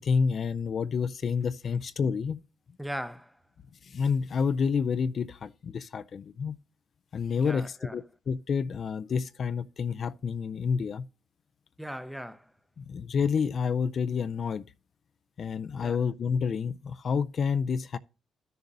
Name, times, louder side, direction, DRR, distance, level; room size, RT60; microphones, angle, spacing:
voice 1, 0.0-2.4 3.8-6.6 7.1-11.1 12.8-14.6 15.4-18.0, left 6 dB, 50° left, 0.3 m, -29 dB
voice 2, 2.8-3.4 7.4-8.0 11.8-12.5 15.8-16.0, equal, ahead, 0.5 m, -38 dB
12.5 x 6.6 x 2.6 m
cardioid pair, 90°, 0 cm